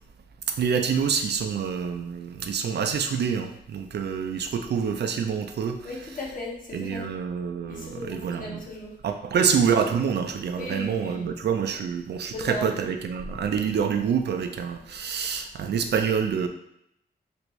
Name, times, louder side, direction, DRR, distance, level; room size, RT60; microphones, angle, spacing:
voice 1, 0.5-6.1 6.7-8.6 9.0-16.5, right 7 dB, 85° right, 6 dB, 0.4 m, -27 dB
voice 2, 5.8-7.1 7.7-9.0 10.6-11.3 12.3-12.7, left 1 dB, 55° left, -3 dB, 0.9 m, -36 dB
3.4 x 2.6 x 3.1 m, 0.76 s
wide cardioid pair, 150°, 17 cm